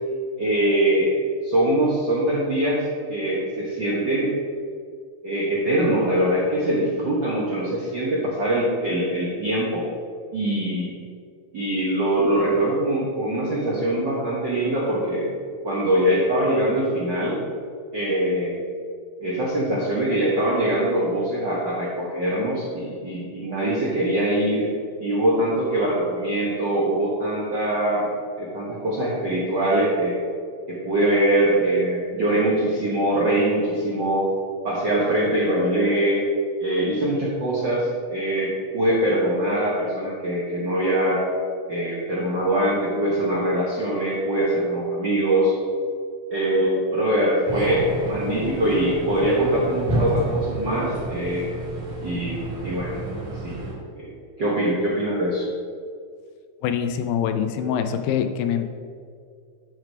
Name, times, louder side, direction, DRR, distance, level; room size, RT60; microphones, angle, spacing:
voice 1, 0.4-1.2 1.4-2.8 3.1-4.4 5.2-9.8 10.3-10.9 11.5-15.3 15.6-17.4 17.9-18.6 19.2-24.7 25.0-28.1 28.4-30.1 30.7-34.3 34.6-36.3 36.6-41.2 41.7-45.5 46.3-51.5 52.0-53.0 53.4-53.6 54.0-54.1 54.4-55.5, right 1 dB, 65° right, -6 dB, 1.1 m, -23 dB
sound 1, 47.5-53.7, right 1 dB, 50° right, 2.8 m, -30 dB
voice 2, 56.6-58.6, left 8 dB, 85° left, 8 dB, 2.3 m, -24 dB
9.7 x 4.7 x 4.6 m, 2.2 s
omnidirectional pair, 4.0 m